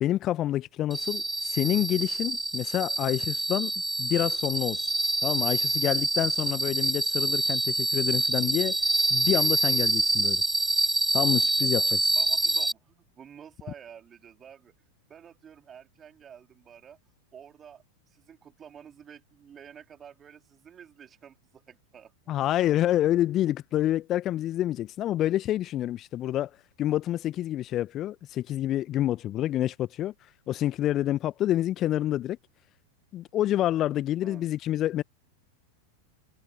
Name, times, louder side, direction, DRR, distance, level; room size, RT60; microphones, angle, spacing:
voice 1, 0.0-3.7 4.0-4.9 5.2-8.8 9.1-10.4 11.1-12.0 22.3-26.5 26.8-30.1 30.5-32.4 33.1-35.0, left 13 dB, 30° left, 1.2 m, -27 dB
sound 1, 0.9-12.7, right 2 dB, 5° right, 0.4 m, -26 dB
voice 2, 11.9-14.7 15.1-17.0 17.3-22.1 34.2-34.5, right 8 dB, 25° right, 3.6 m, -50 dB
figure-of-eight pair, 90°, 0 cm